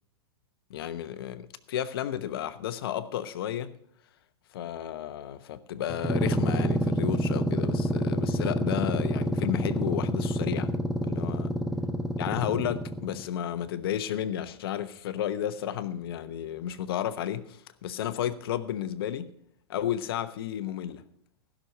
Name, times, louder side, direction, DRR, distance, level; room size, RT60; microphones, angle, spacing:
voice 1, 0.7-3.7 4.5-10.7 11.0-11.5 12.2-19.3 19.7-21.0, left 10 dB, 65° left, 1.0 m, -32 dB
sound 1, 5.9-13.3, equal, 5° right, 0.6 m, -28 dB
15.5 x 6.4 x 6.6 m
hypercardioid pair, 115°, 13 cm